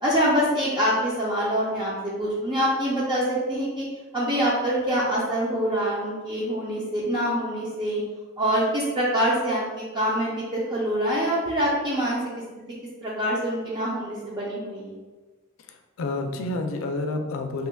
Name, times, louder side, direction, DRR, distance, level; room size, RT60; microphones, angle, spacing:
voice 1, 0.0-3.9 4.1-8.0 8.4-12.2 12.6-12.7 13.0-15.0, equal, 25° right, -6 dB, 0.5 m, -25 dB
voice 2, 15.6-17.7, left 2 dB, 80° left, 5 dB, 0.4 m, -29 dB
2.9 x 2.2 x 3.3 m, 1.3 s
head